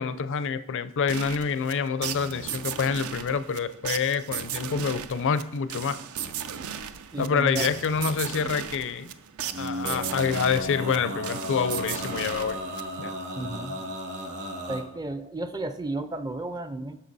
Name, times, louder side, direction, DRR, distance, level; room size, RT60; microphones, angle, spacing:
voice 1, 0.0-6.0 7.2-9.1 9.6-12.6 13.0-13.1, left 6 dB, 60° left, 14 dB, 0.5 m, -27 dB
sound 1, 1.1-13.2, right 8 dB, 70° right, 0.5 m, -36 dB
voice 2, 7.1-7.7 13.3-13.8 14.7-17.0, right 2 dB, 20° right, 10 dB, 0.4 m, -33 dB
Male singing, 9.5-14.8, equal, 50° right, 1.8 m, -34 dB
11.5 x 6.4 x 4.1 m, 0.81 s
head